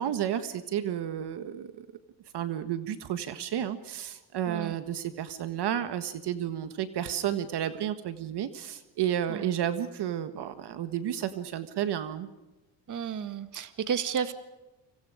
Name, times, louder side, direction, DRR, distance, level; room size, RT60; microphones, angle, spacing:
voice 1, 0.0-1.9 2.3-12.3, right 10 dB, 65° right, 10 dB, 1.7 m, -32 dB
voice 2, 12.9-14.3, right 7 dB, 45° right, 11 dB, 1.9 m, -32 dB
29.5 x 25.5 x 5.1 m, 1.1 s
cardioid pair, 135°, 45 cm